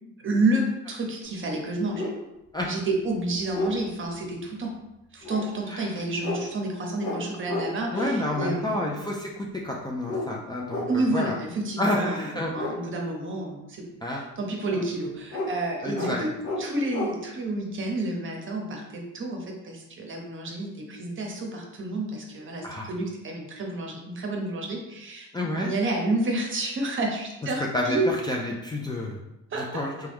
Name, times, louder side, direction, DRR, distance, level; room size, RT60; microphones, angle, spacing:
voice 1, 0.2-2.0 2.7-4.7 5.1-8.9 10.9-13.9 14.2-16.3 16.6-28.1 29.5-29.8, right 2 dB, 40° right, 1 dB, 0.8 m, -30 dB
sound 1, 1.2-1.3 1.9-2.2 2.8-2.9 3.1-3.8 5.2-5.4 6.2-6.4 7.0-7.2 7.5-7.7 7.9-8.5 10.1-10.3 10.7-10.9 11.8-12.0 12.5-12.7 15.3-15.5 15.9-16.1 16.4-16.6 16.9-17.1, left 2 dB, 75° left, 0.8 m, -31 dB
voice 2, 7.9-9.3 9.6-11.3 11.8-12.5 14.0-14.2 14.7-14.8 15.8-16.3 22.6-22.9 25.3-25.7 27.7-29.2 29.6-29.9, left 1 dB, 15° left, -2 dB, 0.4 m, -29 dB
2.9 x 2.3 x 3.4 m, 0.90 s
cardioid pair, 90°, 30 cm